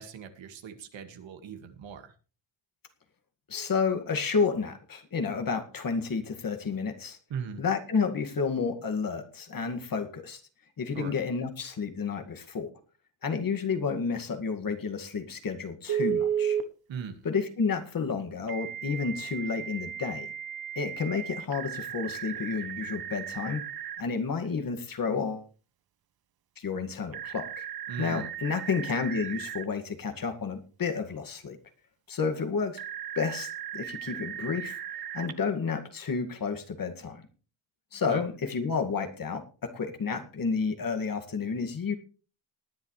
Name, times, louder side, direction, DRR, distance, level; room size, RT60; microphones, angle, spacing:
voice 1, 0.0-2.1 7.3-7.6 10.9-11.1 16.9-17.2 27.9-28.3 38.1-38.2, right 7 dB, 80° right, 7 dB, 2.0 m, -39 dB
voice 2, 3.5-7.2 7.6-10.4 10.8-12.7 13.2-16.6 17.2-20.3 20.8-23.6 24.0-25.5 26.6-27.7 28.0-31.6 32.1-32.8 33.2-34.8 35.1-37.3 37.9-41.9, left 5 dB, 45° left, 6 dB, 2.1 m, -31 dB
Telephone, 15.9-16.6 18.5-24.0 27.1-29.7 32.8-35.3, right 9 dB, 50° right, 1.1 m, -35 dB
19.0 x 10.0 x 3.3 m, 0.37 s
cardioid pair, 120°, 45 cm